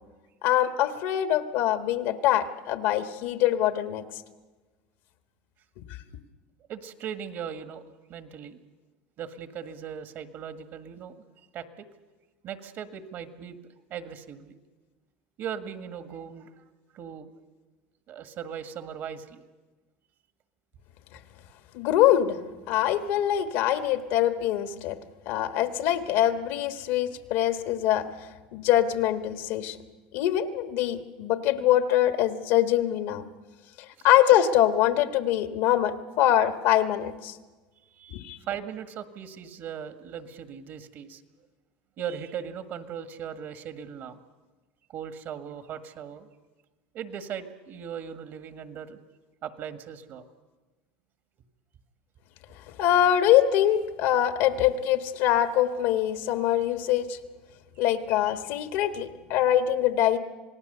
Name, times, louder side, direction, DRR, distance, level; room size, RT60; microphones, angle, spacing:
voice 1, 0.4-4.0 5.8-5.9 21.7-22.4 22.7-25.0 25.2-29.8 30.1-33.2 34.0-37.4 38.1-38.4 52.7-57.2 57.8-60.2, left 11 dB, 70° left, 9 dB, 1.5 m, -24 dB
voice 2, 6.7-7.8 8.1-8.6 9.2-11.3 11.5-11.9 12.4-13.6 13.9-14.6 15.4-16.6 16.9-17.3 18.1-19.4 34.0-34.1 37.9-38.2 38.5-41.2 42.0-44.2 44.9-46.3 46.9-49.0 49.4-50.3 57.8-57.9, right 8 dB, 55° right, 9 dB, 1.8 m, -38 dB
27.0 x 18.5 x 6.8 m, 1.3 s
supercardioid pair, 100°, 5 cm